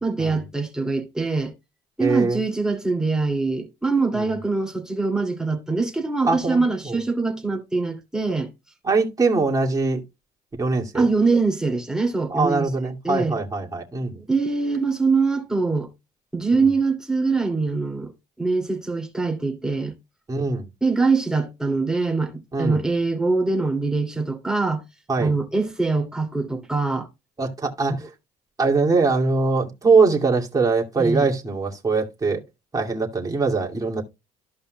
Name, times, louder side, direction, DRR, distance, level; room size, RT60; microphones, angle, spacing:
voice 1, 0.0-1.5 2.0-8.5 10.9-13.4 14.2-15.9 16.3-18.1 18.4-19.9 20.8-24.8 25.2-27.1 31.0-31.3, right 3 dB, 5° right, 2.7 m, -23 dB
voice 2, 2.0-2.4 4.1-4.4 6.2-7.0 8.8-10.0 10.6-11.1 12.3-14.2 16.5-16.7 20.3-20.7 22.5-22.8 25.1-25.3 27.4-28.0 28.6-32.4 32.7-34.0, right 4 dB, 20° right, 2.5 m, -22 dB
14.5 x 5.3 x 2.3 m
cardioid pair, 110°, 17 cm